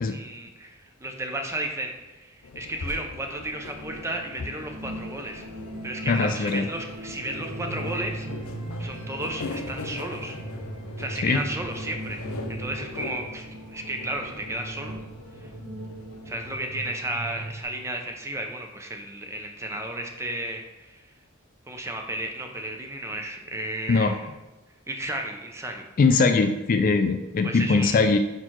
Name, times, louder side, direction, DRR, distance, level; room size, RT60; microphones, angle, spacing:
voice 1, 0.1-5.4 5.8-8.3 8.8-10.4 11.0-12.2 12.5-14.9 15.4-15.5 16.3-21.0 21.7-24.3 24.9-25.9 27.4-28.1, right 1 dB, 15° right, 3 dB, 0.6 m, -33 dB
sound 1, 2.4-16.6, left 3 dB, 85° left, 0.6 m, -41 dB
sound 2, 3.0-17.6, right 1 dB, 70° right, 1.2 m, -39 dB
voice 2, 6.0-6.7 11.2-11.4 23.9-24.2 26.0-28.2, left 4 dB, 40° left, 8 dB, 0.3 m, -21 dB
4.8 x 4.5 x 4.4 m, 1.1 s
head